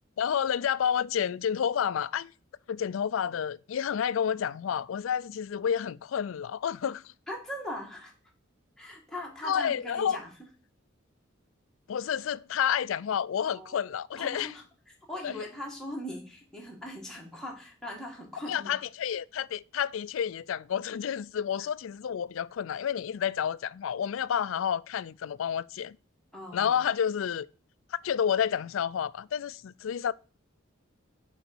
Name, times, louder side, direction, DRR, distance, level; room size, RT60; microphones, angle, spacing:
voice 1, 0.2-2.3 2.7-7.1 9.4-10.2 11.9-14.5 15.2-15.4 18.5-26.0 26.5-27.5 28.0-30.1, left 8 dB, 70° left, 0.4 m, -30 dB
voice 2, 7.3-8.1 8.8-10.3 13.5-13.8 14.1-14.6 15.1-18.7 26.3-26.7, left 1 dB, ahead, 2.1 m, -40 dB
6.7 x 4.9 x 6.1 m
head